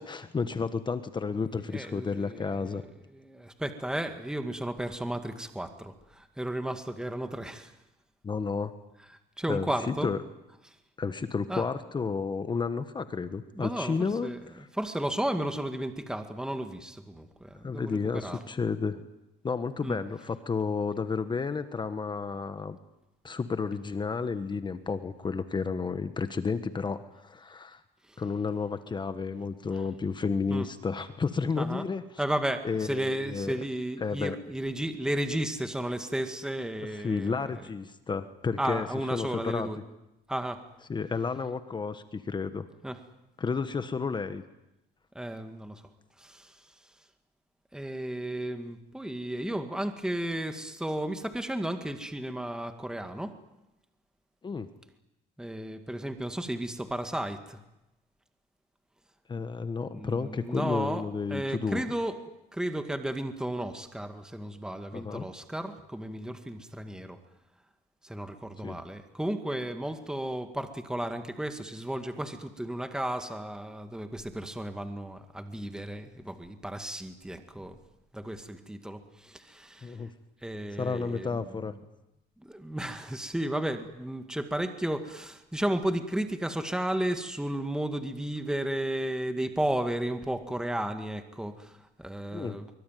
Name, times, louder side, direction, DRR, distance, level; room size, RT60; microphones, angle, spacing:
voice 1, 0.0-2.8 8.2-8.7 9.5-10.2 11.0-14.7 17.6-19.0 19.4-22.8 23.2-27.8 28.2-32.0 32.6-33.5 34.0-34.4 36.9-39.7 40.9-42.7 43.4-44.4 54.4-54.7 59.3-61.8 64.9-65.3 68.6-68.8 79.8-80.1 80.8-81.7 92.3-92.6, left 5 dB, 25° left, 10 dB, 1.4 m, -31 dB
voice 2, 1.7-2.8 3.1-7.7 9.4-10.1 11.5-11.6 13.5-14.4 14.7-18.4 19.8-20.0 28.1-28.2 30.5-30.7 31.6-31.8 32.2-37.5 38.6-39.8 40.3-40.6 42.8-43.0 45.1-45.8 46.2-46.6 47.7-53.3 55.4-57.6 59.9-61.0 61.3-62.2 62.5-67.2 68.0-77.8 78.1-80.0 80.4-81.4 82.4-92.7, right 1 dB, 5° right, 7 dB, 2.1 m, -33 dB
24.0 x 24.0 x 9.3 m, 0.91 s
cardioid pair, 110°, 17 cm